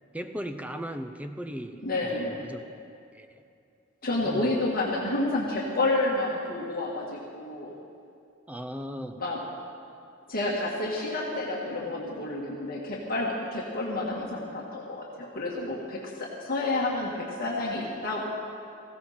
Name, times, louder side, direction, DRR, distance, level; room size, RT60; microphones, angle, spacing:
voice 1, 0.1-2.6 3.1-3.3 4.2-4.5 8.5-9.2, equal, 5° right, 8 dB, 0.7 m, -37 dB
voice 2, 1.8-2.5 4.0-7.8 9.2-9.4 10.3-18.3, left 2 dB, 45° left, -4 dB, 2.0 m, -30 dB
19.0 x 16.0 x 4.4 m, 2.5 s
head